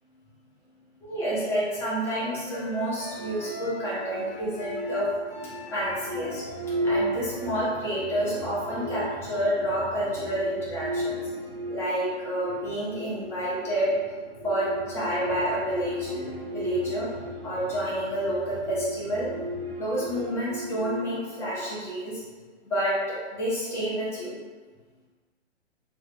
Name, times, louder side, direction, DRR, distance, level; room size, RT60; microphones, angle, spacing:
voice 1, 1.0-5.1 5.3-6.4 6.8-11.2 11.7-14.0 14.4-17.1 17.4-19.3 19.8-22.2 22.7-24.3, equal, 5° left, -8 dB, 0.6 m, -29 dB
Wind instrument woodwind instrument, 1.5-9.0, equal, 65° left, 0.9 m, -43 dB
sound 1, 3.1-22.0, equal, 60° right, 0.6 m, -35 dB
2.5 x 2.3 x 3.6 m, 1.4 s
figure-of-eight pair, 120°, 34 cm